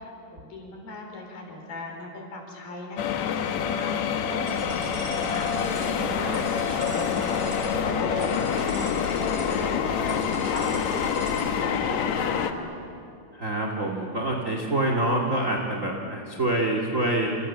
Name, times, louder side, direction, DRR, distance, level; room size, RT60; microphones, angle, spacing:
voice 1, 0.0-12.7, left 2 dB, 55° left, 2 dB, 6.1 m, -38 dB
sound 1, 3.0-12.5, left 8 dB, 85° left, 1.5 m, -27 dB
sound 2, 4.5-12.0, right 2 dB, 85° right, 7.9 m, -37 dB
voice 2, 13.3-17.3, right 1 dB, 35° right, 1 dB, 1.3 m, -26 dB
28.5 x 27.5 x 7.4 m, 2.6 s
omnidirectional pair, 5.0 m